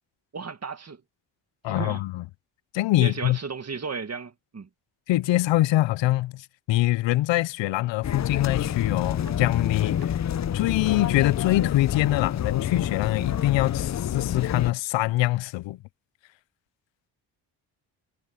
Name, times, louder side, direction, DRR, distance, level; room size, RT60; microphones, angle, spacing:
voice 1, 0.3-1.0 1.7-2.0 3.0-4.7, right 5 dB, 35° right, 1.9 m, -34 dB
voice 2, 1.6-2.2 2.7-3.4 5.1-10.0 10.5-15.8, left 16 dB, 85° left, 0.7 m, -24 dB
sound 1, 8.0-14.7, left 9 dB, 40° left, 0.6 m, -28 dB
sound 2, 8.7-13.9, right 8 dB, 60° right, 4.8 m, -59 dB
cardioid pair, 80°, 44 cm